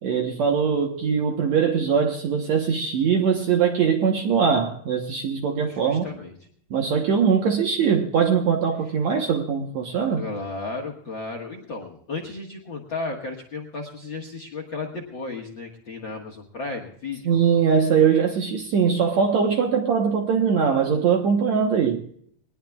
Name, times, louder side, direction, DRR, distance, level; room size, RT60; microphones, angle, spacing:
voice 1, 0.0-6.1 6.7-10.2 17.3-22.0, right 6 dB, 65° right, 3 dB, 1.9 m, -21 dB
voice 2, 5.6-6.3 10.0-17.3, left 3 dB, 50° left, 2 dB, 1.6 m, -34 dB
20.5 x 20.0 x 2.4 m, 0.64 s
omnidirectional pair, 4.4 m